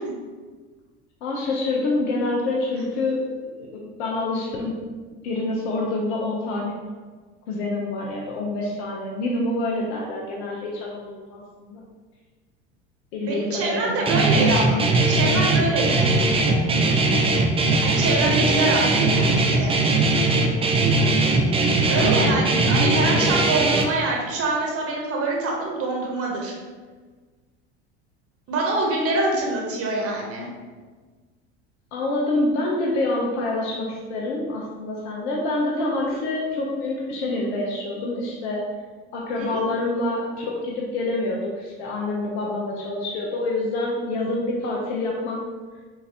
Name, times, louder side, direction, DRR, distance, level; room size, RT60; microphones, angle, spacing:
voice 1, 1.2-3.2 3.5-3.7 4.0-4.9 5.2-6.7 7.5-11.8 13.1-14.0 22.0-22.3 31.9-38.7 39.1-45.4, left 2 dB, 75° left, -2 dB, 0.8 m, -26 dB
voice 2, 13.2-14.8 15.1-16.6 17.8-19.8 21.6-26.5 28.5-30.5 39.4-39.6, right 2 dB, 45° right, -2 dB, 1.2 m, -25 dB
Guitar, 14.1-23.8, right 2 dB, 15° right, 0.4 m, -20 dB
5.7 x 2.6 x 2.8 m, 1.4 s
hypercardioid pair, 90°, 34 cm